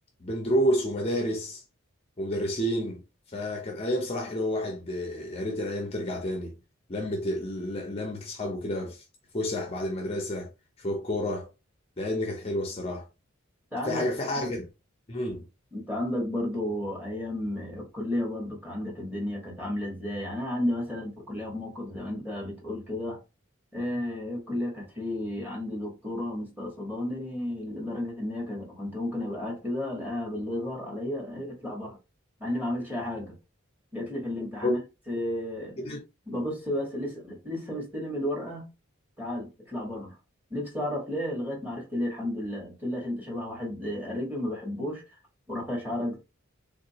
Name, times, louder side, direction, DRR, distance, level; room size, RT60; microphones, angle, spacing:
voice 1, 0.2-1.6 2.2-3.0 3.3-6.6 6.9-9.0 9.3-10.5 10.8-11.5 12.0-13.1 13.9-14.6 15.1-15.5 34.6-34.8 35.8-36.0, equal, 30° left, 0.6 m, -30 dB
voice 2, 13.7-14.1 14.4-14.5 15.7-23.2 23.7-32.0 32.4-33.3 33.9-34.8 35.1-35.7 36.3-38.7 39.2-40.1 40.5-45.2 45.5-46.2, left 1 dB, 10° right, 1.5 m, -32 dB
3.6 x 2.8 x 2.8 m
head